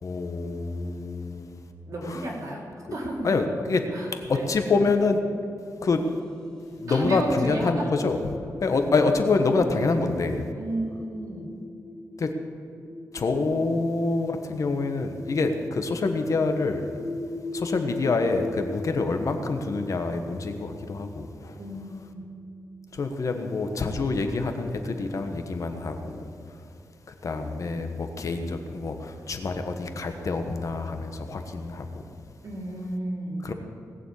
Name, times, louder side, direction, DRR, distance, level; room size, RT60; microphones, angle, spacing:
voice 1, 0.0-1.6 2.0-2.3 3.2-3.8 4.1-5.2 5.8-6.0 6.8-8.2 8.6-10.5 12.2-12.3 13.1-16.9 17.5-21.6 22.9-26.3 27.2-32.0 33.4-33.5, left 3 dB, 55° left, 6 dB, 1.3 m, -26 dB
voice 2, 1.9-2.6 2.9-3.3 3.6-3.7 3.9-4.5 6.9-7.9 9.8-9.9 10.5-11.5 13.7-13.8 21.6-22.2 23.7-23.8 32.4-33.4, right 1 dB, 55° right, -3 dB, 3.6 m, -32 dB
sound 1, 6.0-22.3, left 2 dB, 10° left, 2.0 m, -40 dB
19.0 x 7.2 x 8.5 m, 2.5 s
wide cardioid pair, 130°, 7 cm